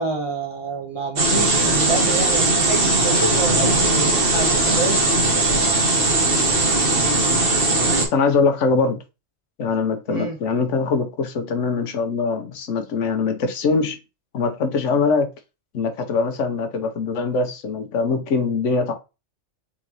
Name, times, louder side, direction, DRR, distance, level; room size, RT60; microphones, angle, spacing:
voice 1, 0.0-5.0 10.1-10.4, right 3 dB, 25° right, 1.2 m, -28 dB
sound 1, 1.2-8.1, right 2 dB, 50° right, 1.3 m, -19 dB
voice 2, 8.1-9.0 9.6-14.0 14.3-15.3 15.7-18.9, left 4 dB, 80° left, 1.1 m, -22 dB
3.9 x 3.8 x 3.0 m
omnidirectional pair, 1.3 m